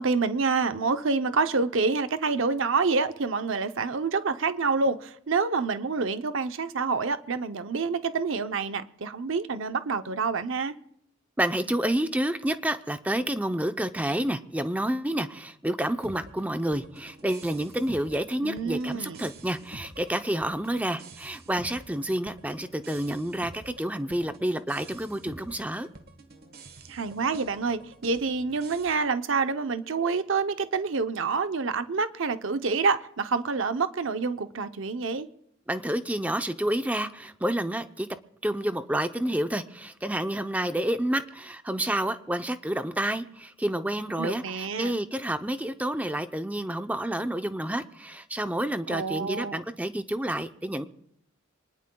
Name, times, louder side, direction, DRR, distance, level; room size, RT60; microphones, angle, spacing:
voice 1, 0.0-10.8 18.4-19.2 26.9-35.3 44.2-45.0 48.9-49.6, right 4 dB, 65° right, 0.7 m, -27 dB
voice 2, 11.4-25.9 35.7-38.1 38.4-50.9, right 1 dB, 5° right, 0.6 m, -29 dB
sound 1, 16.0-28.9, right 2 dB, 45° right, 1.4 m, -48 dB
26.0 x 19.5 x 2.3 m
head